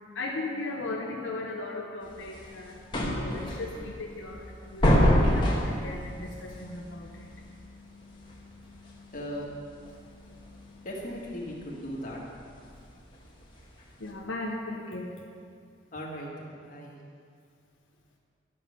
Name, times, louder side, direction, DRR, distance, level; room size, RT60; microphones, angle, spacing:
voice 1, 0.0-9.2 9.8-10.9 14.0-15.1, left 2 dB, 80° left, -1 dB, 0.8 m, -38 dB
sound 1, 2.0-14.1, equal, 25° left, 1.3 m, -29 dB
voice 2, 9.1-9.4 10.8-12.2 15.9-17.0, equal, 40° left, -4 dB, 1.8 m, -38 dB
11.5 x 5.3 x 6.6 m, 2.3 s
head